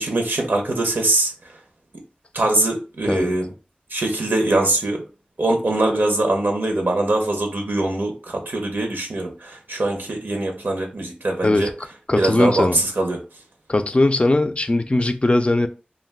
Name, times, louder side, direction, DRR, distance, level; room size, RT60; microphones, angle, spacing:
voice 1, 0.0-1.6 2.3-3.5 3.9-5.0 5.4-11.7 12.2-13.4, right 2 dB, 85° right, 0.6 m, -22 dB
voice 2, 12.1-12.8 13.7-15.7, left 2 dB, 35° left, 0.3 m, -19 dB
2.2 x 2.2 x 3.4 m
wide cardioid pair, 45°, 3 cm